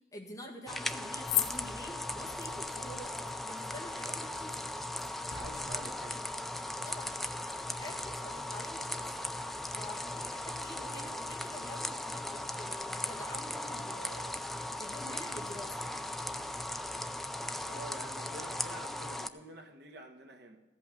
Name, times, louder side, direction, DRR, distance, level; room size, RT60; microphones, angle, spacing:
voice 1, 0.1-4.6 6.8-7.1 7.7-9.1 9.7-14.3 14.7-15.8, left 1 dB, 20° left, -2 dB, 1.8 m, -47 dB
sound 1, 0.7-19.3, left 1 dB, ahead, 0.3 m, -38 dB
sound 2, 1.2-17.0, left 12 dB, 65° left, 0.8 m, -45 dB
voice 2, 5.3-6.3 17.7-20.6, right 2 dB, 60° right, 3 dB, 1.2 m, -48 dB
14.5 x 5.5 x 8.1 m, 1.2 s
head